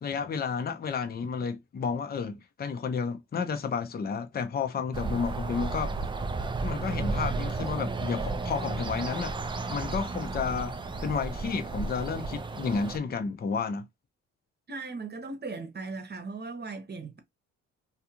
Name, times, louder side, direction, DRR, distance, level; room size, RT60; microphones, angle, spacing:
voice 1, 0.0-5.9 6.6-9.3 9.7-10.7 11.0-13.9, left 5 dB, 30° left, 0.6 m, -31 dB
sound 1, 4.9-13.0, right 3 dB, 15° right, 0.4 m, -33 dB
voice 2, 14.7-17.2, right 3 dB, 35° right, 0.9 m, -38 dB
2.5 x 2.4 x 2.8 m
cardioid pair, 90°, 30 cm